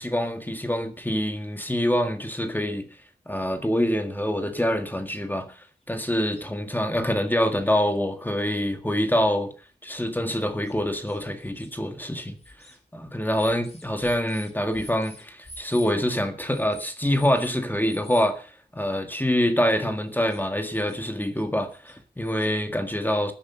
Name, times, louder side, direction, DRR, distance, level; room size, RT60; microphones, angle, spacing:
voice 1, 0.0-2.9 3.2-9.5 9.8-12.4 12.9-23.3, equal, 10° left, 1.8 m, -25 dB
sound 1, 5.9-6.0 6.3-6.4 7.3-7.4 7.7-7.8 8.4-8.5 9.4-9.5 9.8-9.9 10.6-11.7 12.4-12.8 13.4-15.9 16.5-17.6 17.8-18.3 20.1-20.4 20.7-21.4 21.7-22.5, left 1 dB, 40° left, 6.7 m, -46 dB
14.5 x 10.0 x 6.9 m
wide cardioid pair, 105°, 17 cm